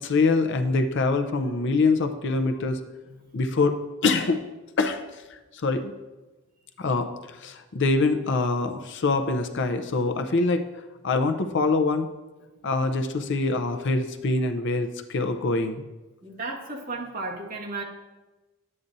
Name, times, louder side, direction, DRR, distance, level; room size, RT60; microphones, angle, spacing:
voice 1, 0.0-2.8 3.3-4.4 4.8-5.0 5.6-5.9 6.8-10.6 11.0-12.1 12.6-15.8, left 3 dB, 55° left, 7 dB, 0.6 m, -24 dB
voice 2, 16.2-17.8, right 3 dB, 40° right, -2 dB, 1.5 m, -34 dB
11.0 x 8.6 x 2.6 m, 1.1 s
head